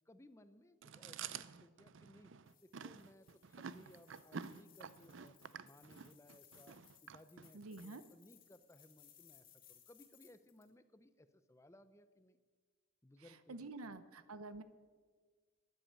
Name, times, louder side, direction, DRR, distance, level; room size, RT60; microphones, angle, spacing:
voice 1, 0.1-2.3 2.6-5.4 5.6-6.8 7.0-12.4 13.0-14.0, left 1 dB, 15° left, 11 dB, 0.6 m, -63 dB
Chewing mastication, 0.8-7.9, right 6 dB, 55° right, 0.5 m, -50 dB
sound 1, 2.5-10.7, left 10 dB, 40° left, 2.4 m, -66 dB
voice 2, 7.5-8.0 13.2-14.6, right 3 dB, 80° right, 12 dB, 0.8 m, -49 dB
12.5 x 10.5 x 8.7 m, 1.5 s
head